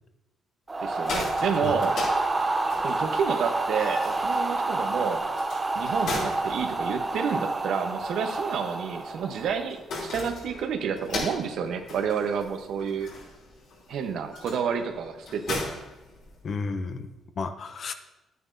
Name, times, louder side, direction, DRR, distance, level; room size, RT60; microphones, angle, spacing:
sound 1, 0.7-9.8, right 2 dB, 20° right, 0.5 m, -28 dB
sound 2, 0.8-16.7, left 2 dB, 75° left, 2.9 m, -39 dB
voice 1, 0.8-1.9 2.8-5.2 5.7-13.1 13.9-15.6, right 7 dB, 75° right, 6 dB, 0.8 m, -30 dB
voice 2, 16.4-17.9, left 4 dB, 50° left, 9 dB, 0.7 m, -33 dB
10.0 x 9.3 x 2.6 m, 1.0 s
cardioid pair, 90°, 0 cm